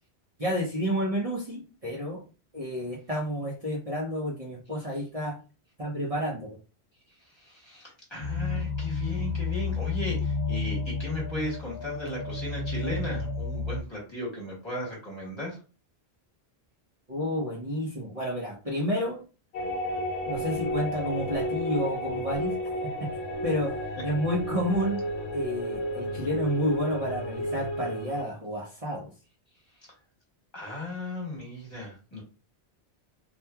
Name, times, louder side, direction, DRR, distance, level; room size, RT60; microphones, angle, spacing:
voice 1, 0.4-2.2 2.5-5.4 5.8-6.6 17.1-19.2 20.3-22.5 23.0-23.1 23.4-23.7 24.0-25.0 25.3-29.1, equal, 40° right, -5 dB, 0.8 m, -30 dB
voice 2, 7.2-15.6 29.8-29.9 30.5-32.2, left 1 dB, 25° left, -4 dB, 1.2 m, -36 dB
sound 1, 8.2-13.8, left 4 dB, 50° left, 0.9 m, -31 dB
sound 2, 19.5-28.2, equal, 85° left, 0.9 m, -32 dB
2.9 x 2.4 x 2.2 m, 0.34 s
omnidirectional pair, 1.1 m